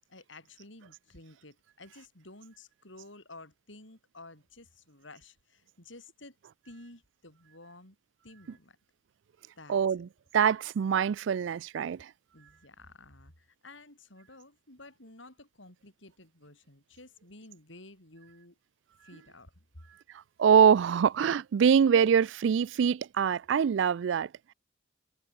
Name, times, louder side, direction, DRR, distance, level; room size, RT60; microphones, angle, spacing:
voice 1, 0.1-6.4 6.6-8.0 8.2-8.8 9.6-10.1 12.3-18.6 19.0-19.6, left 2 dB, 75° left, 7.7 m, -52 dB
voice 2, 9.7-10.1 10.3-12.1 20.4-24.5, right 7 dB, 70° right, 0.3 m, -24 dB
head